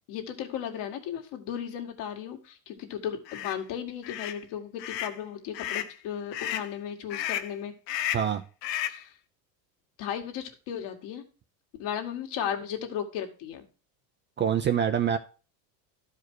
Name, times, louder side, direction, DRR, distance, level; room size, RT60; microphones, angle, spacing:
voice 1, 0.1-7.7 8.9-9.1 10.0-11.2 11.8-13.6, left 9 dB, 60° left, 4 dB, 2.0 m, -35 dB
sound 1, 3.3-3.6 4.0-4.4 4.8-5.2 5.5-5.9 6.3-6.7 7.1-7.5 7.9-8.3 8.6-9.0, left 11 dB, 85° left, 1.0 m, -33 dB
voice 2, 14.4-15.2, right 8 dB, 25° right, 8 dB, 0.5 m, -25 dB
12.0 x 5.0 x 4.5 m, 0.36 s
supercardioid pair, 130°, 48 cm